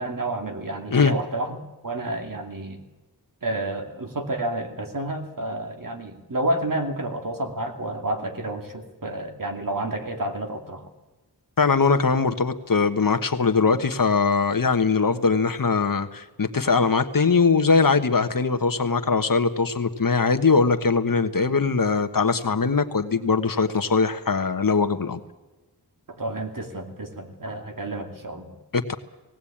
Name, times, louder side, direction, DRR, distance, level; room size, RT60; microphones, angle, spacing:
voice 1, 0.0-2.8 3.4-10.9 26.2-28.6, right 1 dB, 55° right, 4 dB, 2.7 m, -30 dB
voice 2, 11.6-25.2 28.7-28.9, left 4 dB, 55° left, 7 dB, 1.3 m, -21 dB
18.5 x 18.0 x 8.7 m, 1.1 s
wide cardioid pair, 70°, 40 cm